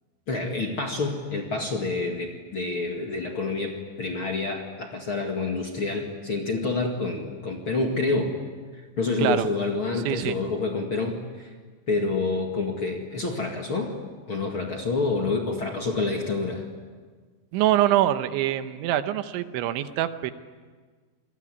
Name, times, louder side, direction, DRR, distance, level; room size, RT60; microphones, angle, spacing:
voice 1, 0.3-8.3 8.7-11.5 11.9-13.9 14.3-16.6, left 3 dB, 40° left, 2 dB, 2.1 m, -28 dB
voice 2, 10.1-10.4 17.5-20.3, right 13 dB, 90° right, 10 dB, 3.5 m, -24 dB
27.5 x 21.0 x 9.7 m, 1.5 s
omnidirectional pair, 5.2 m